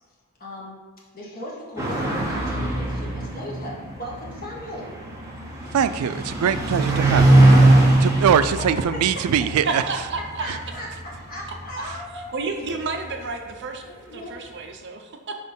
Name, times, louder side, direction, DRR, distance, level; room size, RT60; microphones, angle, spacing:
voice 1, 0.4-0.8 1.1-4.9 8.6-9.5 10.4-12.8 13.8-14.4, equal, 45° left, -4 dB, 1.6 m, -37 dB
sound 1, 1.8-12.7, right 2 dB, 15° right, 1.0 m, -21 dB
voice 2, 5.7-9.8 10.5-10.6, right 8 dB, 90° right, 13 dB, 0.3 m, -22 dB
voice 3, 9.6-10.5 12.3-13.8 14.1-15.4, right 3 dB, 55° right, 4 dB, 0.7 m, -30 dB
4.8 x 4.2 x 5.3 m, 1.4 s
head